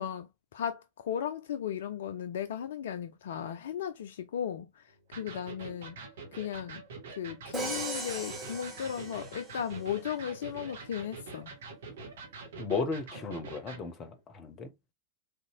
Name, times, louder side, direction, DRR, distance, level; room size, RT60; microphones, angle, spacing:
voice 1, 0.0-6.0 6.3-6.8 7.2-11.5, left 9 dB, 60° left, 0.3 m, -36 dB
Electric guitar, 5.1-13.9, right 3 dB, 60° right, 1.2 m, -45 dB
Crash cymbal, 7.5-9.7, right 2 dB, 15° right, 1.2 m, -38 dB
voice 2, 12.6-14.7, left 4 dB, 30° left, 0.7 m, -35 dB
3.5 x 2.7 x 2.8 m
figure-of-eight pair, 90°, 0 cm